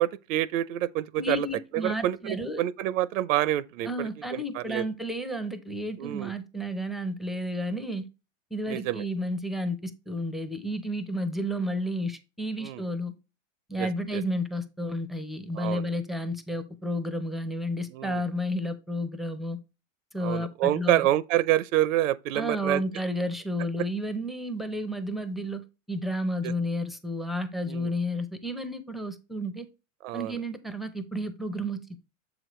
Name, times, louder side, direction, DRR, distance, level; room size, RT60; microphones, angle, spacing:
voice 1, 0.0-1.5 1.7-4.8 6.0-6.3 8.7-9.0 12.6-12.8 13.8-14.2 15.6-15.8 17.9-18.2 20.2-22.8 26.4-26.5 27.7-27.9 30.0-30.4, right 14 dB, 75° right, 0.5 m, -27 dB
voice 2, 1.2-2.6 3.8-8.1 8.5-13.1 13.7-19.6 20.1-21.1 22.3-25.6 25.9-29.7 30.1-32.0, equal, ahead, 0.5 m, -31 dB
7.2 x 4.9 x 3.0 m
supercardioid pair, 130°, 39 cm